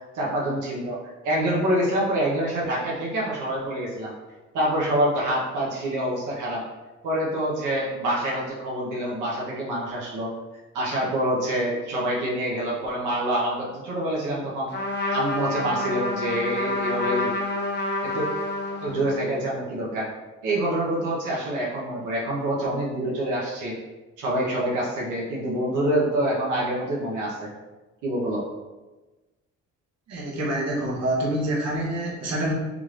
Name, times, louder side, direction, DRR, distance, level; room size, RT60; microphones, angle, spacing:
voice 1, 0.1-1.0 1.2-4.1 4.5-6.6 7.0-10.3 10.7-14.7 15.1-17.3 18.0-18.3 18.8-20.1 20.4-23.7 24.2-27.5 28.0-28.4, right 1 dB, 85° right, -5 dB, 0.9 m, -26 dB
Trumpet, 14.7-19.3, left 2 dB, 35° left, 0.7 m, -28 dB
voice 2, 30.1-32.5, right 1 dB, 55° right, -3 dB, 1.0 m, -26 dB
3.7 x 3.2 x 2.4 m, 1.2 s
cardioid pair, 90°, 30 cm